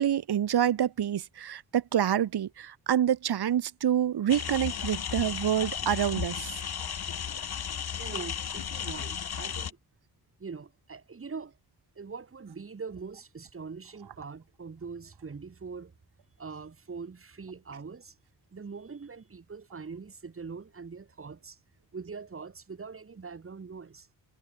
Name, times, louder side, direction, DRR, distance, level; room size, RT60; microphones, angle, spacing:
voice 1, 0.0-6.6, right 10 dB, 85° right, 1.3 m, -27 dB
sound 1, 4.3-9.7, left 8 dB, 70° left, 3.1 m, -34 dB
voice 2, 7.9-9.8 10.4-11.5 12.0-15.9 16.4-18.2 18.5-21.6 21.9-24.1, right 5 dB, 35° right, 2.6 m, -42 dB
wide cardioid pair, 160°, 38 cm